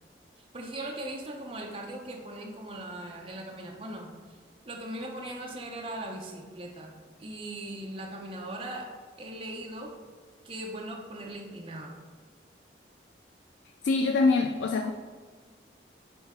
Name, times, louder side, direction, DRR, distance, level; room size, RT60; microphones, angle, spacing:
voice 1, 0.5-4.4 4.6-6.9 7.2-8.9 9.2-9.9 10.4-12.0, right 1 dB, 30° right, -1 dB, 0.6 m, -39 dB
voice 2, 13.8-14.9, left 3 dB, 90° left, 5 dB, 0.3 m, -24 dB
9.3 x 3.2 x 3.6 m, 1.5 s
head